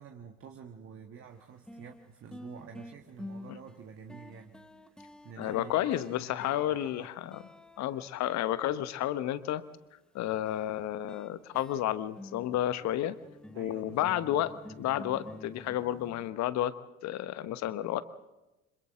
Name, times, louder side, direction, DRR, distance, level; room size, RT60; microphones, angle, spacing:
voice 1, 0.0-4.6 4.9-5.0 5.2-7.1 13.5-14.2, right 7 dB, 30° right, 3 dB, 1.7 m, -49 dB
sound 1, 1.2-1.3 1.7-8.9 10.5-16.3, left 1 dB, ahead, 1.4 m, -49 dB
voice 2, 5.4-7.4 7.8-9.6 10.1-13.1 13.5-16.7 17.0-18.0, left 12 dB, 40° left, 14 dB, 1.1 m, -31 dB
30.0 x 26.0 x 3.8 m, 1.0 s
figure-of-eight pair, 65°, 41 cm